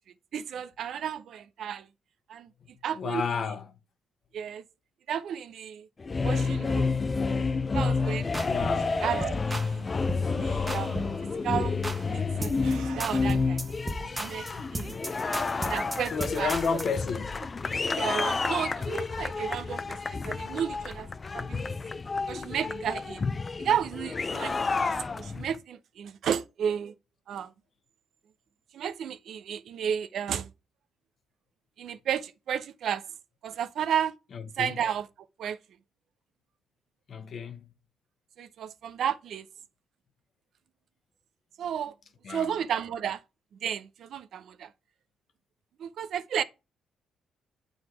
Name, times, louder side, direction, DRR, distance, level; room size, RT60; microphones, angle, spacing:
voice 1, 0.3-1.9 2.3-2.5 2.8-3.5 4.3-4.6 5.1-5.9 6.2-6.9 7.7-8.3 9.0-9.9 10.4-11.0 11.4-11.8 12.1-13.6 14.2-14.5 14.7-15.0 15.6-16.8 17.9-21.6 22.3-23.2 23.6-26.9 27.3-27.5 28.7-30.5 31.8-33.0 33.4-34.1 34.6-35.1 35.4-35.6 38.4-39.5 41.6-41.9 42.3-43.2 43.6-44.7 45.8-46.4, right 8 dB, 70° right, 0.6 m, -32 dB
voice 2, 3.0-3.7 8.4-9.0 14.3-15.3 16.1-17.3 34.3-34.8 37.1-37.6 42.2-42.5, left 5 dB, 55° left, 1.1 m, -32 dB
sound 1, 6.0-25.6, left 4 dB, 30° left, 0.4 m, -30 dB
sound 2, 7.8-8.0 8.3-8.9 9.2-9.7 10.1-10.3 10.7-11.2 11.5-12.1 12.4-12.7 13.0-16.9, right 2 dB, 15° right, 1.0 m, -36 dB
sound 3, 9.4-14.7, right 6 dB, 85° right, 1.3 m, -47 dB
7.9 x 3.9 x 4.7 m
cardioid pair, 90°, 0 cm